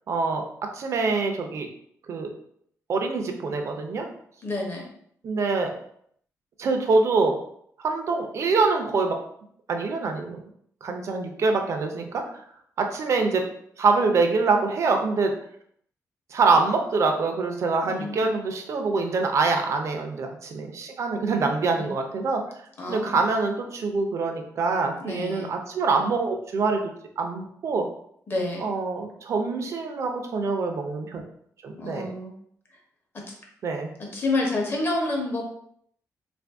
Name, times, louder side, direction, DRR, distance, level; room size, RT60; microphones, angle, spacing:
voice 1, 0.1-0.4 0.7-1.7 2.1-2.3 2.9-4.1 5.2-5.7 6.6-7.4 7.8-9.2 9.7-10.4 10.8-12.4 12.8-13.5 13.8-15.3 16.3-22.4 22.9-27.8 28.6-31.2 31.6-32.1 33.6-33.9, right 4 dB, 50° right, 4 dB, 0.5 m, -25 dB
voice 2, 4.4-4.8 17.8-18.3 21.8-21.9 22.8-23.3 25.0-25.5 28.3-28.6 31.8-32.3 33.1-33.2 34.1-35.4, left 2 dB, 35° left, 0 dB, 0.9 m, -28 dB
3.5 x 2.6 x 3.4 m, 0.66 s
wide cardioid pair, 170°, 6 cm